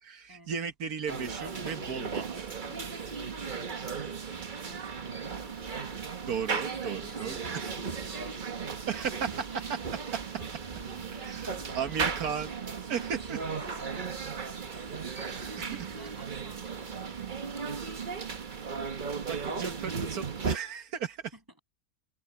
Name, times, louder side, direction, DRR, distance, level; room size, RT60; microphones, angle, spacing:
voice 1, 0.0-2.8 6.2-7.7 8.9-9.3 11.2-12.5 12.9-13.4 15.1-15.9 19.3-21.2, right 7 dB, 80° right, 1.6 m, -36 dB
sound 1, 1.1-20.6, right 5 dB, 35° right, 1.1 m, -36 dB
voice 2, 3.4-5.6 5.9-8.6 8.9-9.8 10.3-10.5 13.2-14.1 14.7-17.8 21.3-21.6, equal, 15° right, 6.7 m, -54 dB
omnidirectional pair, 1.6 m